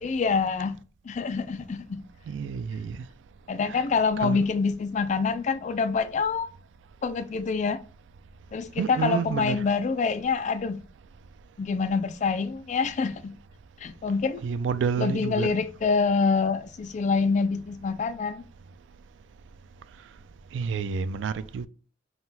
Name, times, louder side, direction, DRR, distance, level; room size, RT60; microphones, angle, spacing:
voice 1, 0.0-0.8 1.1-2.0 3.5-6.5 7.0-7.8 8.5-10.8 11.6-13.4 13.8-14.4 15.0-18.4, left 4 dB, 40° left, 0.3 m, -26 dB
voice 2, 2.3-3.0 4.2-4.4 8.8-9.6 14.4-15.5 20.5-21.7, right 6 dB, 80° right, 0.3 m, -29 dB
3.9 x 2.2 x 4.1 m
head